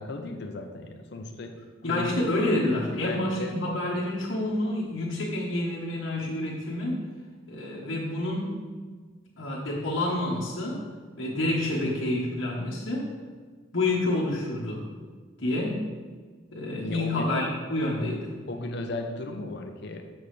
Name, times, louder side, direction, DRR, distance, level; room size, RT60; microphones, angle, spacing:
voice 1, 0.0-1.6 1.8-2.3 2.9-3.5 16.8-17.3 18.5-20.1, left 2 dB, 55° left, 5 dB, 0.6 m, -35 dB
voice 2, 1.8-7.0 7.5-8.6 9.4-10.8 11.2-13.1 13.7-14.9 15.4-15.8 16.5-18.3, left 1 dB, 75° left, -6 dB, 1.2 m, -28 dB
6.9 x 6.2 x 3.2 m, 1.5 s
head